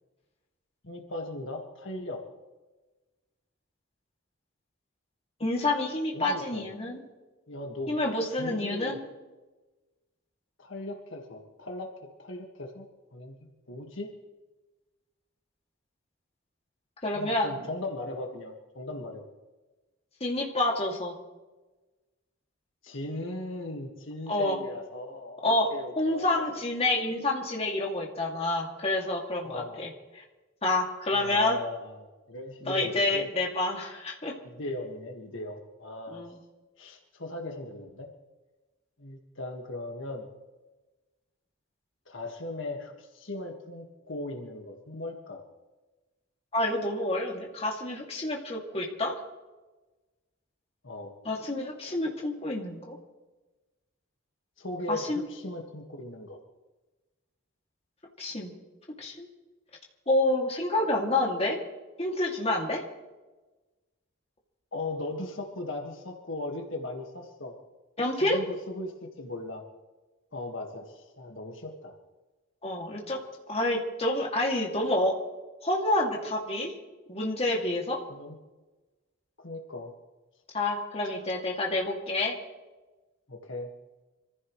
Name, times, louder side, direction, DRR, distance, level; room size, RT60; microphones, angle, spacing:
voice 1, 0.8-2.2 6.1-6.7 7.5-8.0 8.4-9.0 10.6-12.9 13.1-14.1 17.1-19.3 22.8-26.4 29.4-29.8 31.1-33.3 34.4-36.2 36.8-38.1 39.0-40.3 42.1-45.4 50.8-51.1 54.6-56.4 64.7-67.6 68.2-69.6 70.3-72.0 78.1-78.3 79.4-79.9 83.3-83.7, left 2 dB, 65° left, 2 dB, 1.8 m, -38 dB
voice 2, 5.4-7.0 7.9-9.0 17.0-17.6 20.2-21.1 24.3-24.6 25.4-25.7 26.0-29.9 30.2-30.3 30.6-31.6 32.7-34.3 36.1-36.4 46.5-49.2 51.2-53.0 54.9-55.3 58.2-58.5 59.0-59.3 60.1-61.6 62.0-62.8 68.0-68.4 72.6-73.2 73.5-75.2 75.6-76.7 77.1-78.0 80.5-82.4, left 2 dB, 30° left, -1 dB, 2.5 m, -28 dB
26.0 x 15.0 x 3.2 m, 1.2 s
head